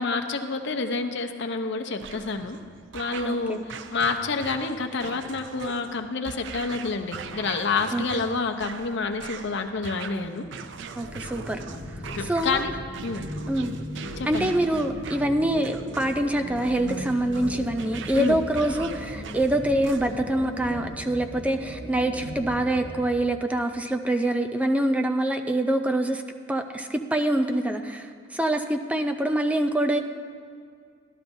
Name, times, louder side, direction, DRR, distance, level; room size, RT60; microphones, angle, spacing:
voice 1, 0.0-2.6 2.9-10.5 12.1-12.7 13.0-13.2 14.2-14.5 18.1-18.4, left 4 dB, 65° left, 5 dB, 0.7 m, -28 dB
sound 1, 2.0-20.4, right 5 dB, 65° right, 0.5 m, -42 dB
voice 2, 3.2-3.7 7.9-8.2 11.0-11.6 12.2-12.6 13.5-13.7 14.2-26.2 26.5-30.0, right 1 dB, 5° right, 5 dB, 0.4 m, -25 dB
sound 2, 11.0-22.9, equal, 85° right, 1.8 m, -37 dB
14.0 x 12.0 x 2.7 m, 2.2 s
head